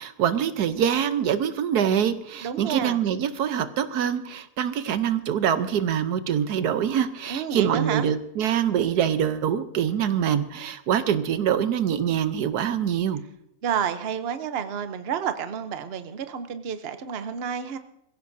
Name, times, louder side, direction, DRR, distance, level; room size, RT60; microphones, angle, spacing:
voice 1, 0.0-13.2, right 9 dB, 85° right, 11 dB, 1.4 m, -24 dB
voice 2, 2.4-3.0 7.3-8.1 13.6-17.8, right 8 dB, 50° right, 9 dB, 0.9 m, -30 dB
23.0 x 15.5 x 2.7 m, 0.79 s
omnidirectional pair, 1.6 m